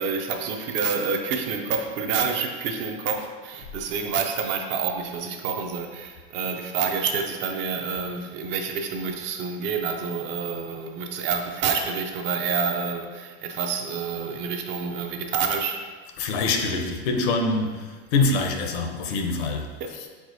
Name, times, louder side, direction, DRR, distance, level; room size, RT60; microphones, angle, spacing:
voice 1, 0.0-15.9 19.8-19.9, right 6 dB, 40° right, 4 dB, 0.4 m, -28 dB
voice 2, 16.2-20.1, left 3 dB, 80° left, 4 dB, 0.7 m, -25 dB
4.7 x 4.1 x 2.6 m, 1.5 s
supercardioid pair, 155°, 31 cm